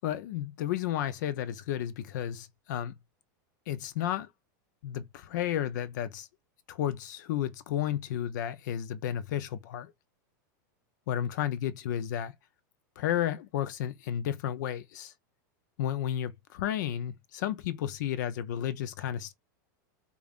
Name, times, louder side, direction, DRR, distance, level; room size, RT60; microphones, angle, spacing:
voice 1, 0.0-3.0 3.7-4.3 4.8-6.3 6.7-9.9 11.1-12.3 13.0-15.1 15.8-19.3, left 11 dB, 65° left, 0.5 m, -32 dB
5.0 x 2.3 x 2.4 m
supercardioid pair, 160°, 10 cm